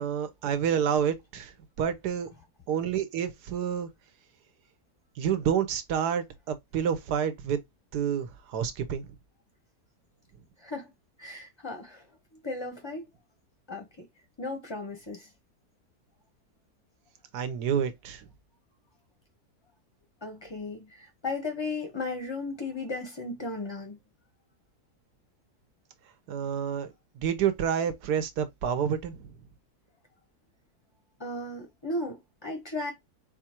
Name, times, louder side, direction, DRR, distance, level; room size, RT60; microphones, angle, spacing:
voice 1, 0.0-1.5 1.8-2.3 2.7-3.9 5.2-7.6 7.9-9.1 17.3-18.2 26.3-29.3, right 8 dB, 80° right, 1.4 m, -29 dB
voice 2, 10.6-10.9 11.2-12.1 12.4-13.0 13.7-14.1 14.4-15.3 20.2-24.0 31.2-32.9, left 2 dB, 30° left, 0.5 m, -35 dB
4.4 x 2.5 x 4.3 m
omnidirectional pair, 1.7 m